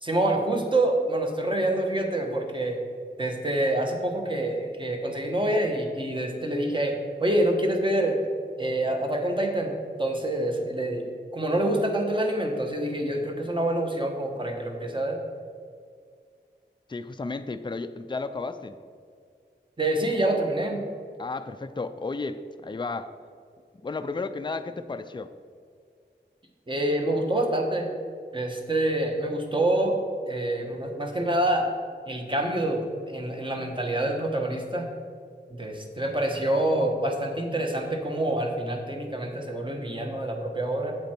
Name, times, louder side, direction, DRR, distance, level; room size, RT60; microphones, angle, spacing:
voice 1, 0.0-2.8 3.2-8.2 8.6-11.0 11.3-15.2 19.8-20.8 26.7-27.9 28.3-30.0 30.3-31.7 32.1-34.9 35.5-41.0, right 1 dB, 25° right, 2 dB, 1.3 m, -26 dB
voice 2, 16.9-18.8 21.2-23.1 23.8-25.3, left 3 dB, 25° left, 9 dB, 0.4 m, -33 dB
8.2 x 7.8 x 4.4 m, 2.2 s
wide cardioid pair, 65°, 19 cm